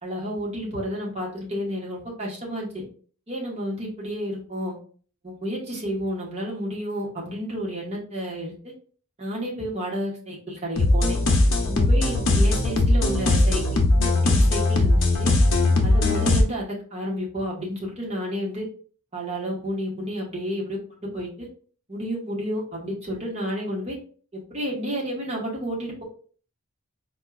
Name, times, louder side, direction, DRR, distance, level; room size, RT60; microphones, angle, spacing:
voice 1, 0.0-2.7 3.3-4.7 5.2-8.7 9.2-11.2 11.7-15.3 15.8-18.7 19.1-21.5 21.9-24.0 24.3-26.0, equal, 30° right, -4 dB, 1.2 m, -31 dB
sound 1, 10.8-16.4, left 2 dB, 60° left, 0.7 m, -19 dB
4.4 x 2.4 x 2.3 m, 0.43 s
head